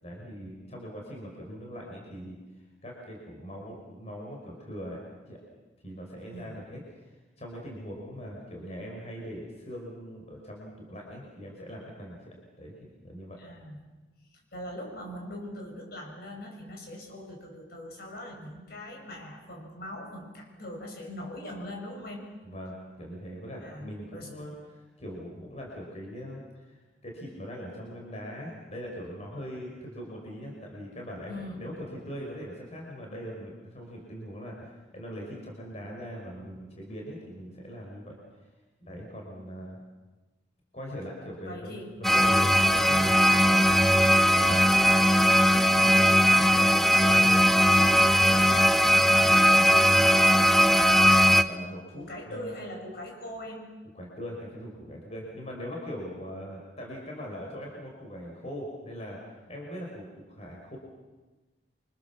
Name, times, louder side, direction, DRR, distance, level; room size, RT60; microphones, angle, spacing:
voice 1, 0.0-2.4 2.8-5.0 5.3-5.4 5.8-12.2 12.6-13.4 22.4-38.2 38.9-39.8 40.7-43.7 44.4-45.3 45.8-47.6 47.8-48.6 49.4-49.9 50.5-50.9 51.4-52.5 53.9-59.2 59.5-60.8, equal, 35° left, -1 dB, 5.3 m, -41 dB
voice 2, 13.4-13.8 14.5-22.2 23.6-24.3 31.3-31.7 41.5-41.9 51.9-53.6, left 1 dB, 55° left, 1 dB, 6.8 m, -41 dB
sound 1, 42.0-51.4, equal, ahead, 0.8 m, -20 dB
Wind instrument woodwind instrument, 43.0-46.7, left 2 dB, 35° right, 1.5 m, -39 dB
29.0 x 25.5 x 7.3 m, 1.2 s
head